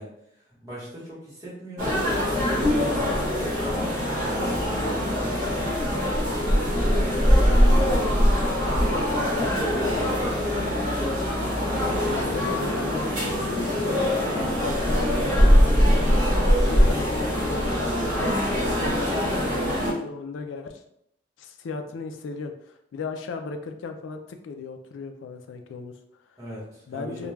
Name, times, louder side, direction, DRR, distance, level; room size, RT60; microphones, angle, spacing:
voice 1, 0.0-5.7 6.6-8.1 8.6-10.6 26.4-27.3, equal, 15° right, -8 dB, 1.0 m, -37 dB
sound 1, 1.8-19.9, equal, 40° right, 0.9 m, -22 dB
voice 2, 2.8-3.2 9.3-9.5 12.0-16.1 16.5-20.8 21.4-26.4 26.9-27.3, left 4 dB, 80° left, 6 dB, 0.3 m, -36 dB
2.3 x 2.2 x 3.1 m, 0.73 s
head